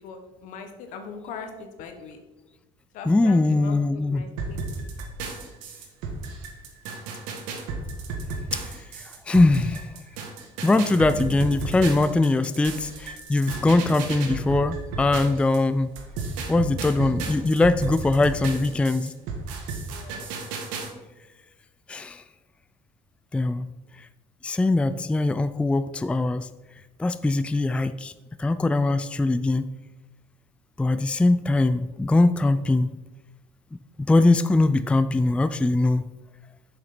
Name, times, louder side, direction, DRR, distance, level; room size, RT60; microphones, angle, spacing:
voice 1, 0.0-2.2 2.9-4.6 11.1-11.7 19.9-20.2, left 5 dB, 70° left, 6 dB, 1.3 m, -41 dB
voice 2, 3.1-4.3 8.5-8.6 9.3-9.9 10.6-15.9 16.5-19.1 21.9-22.2 23.3-23.7 24.4-26.5 27.0-28.1 28.4-29.6 30.8-32.9 34.1-36.1, left 2 dB, 10° left, 12 dB, 0.3 m, -21 dB
sound 1, 4.4-15.6 16.0-20.9, right 4 dB, 85° right, 1.6 m, -33 dB
6.8 x 5.9 x 5.9 m, 1.1 s
supercardioid pair, 95°, 14 cm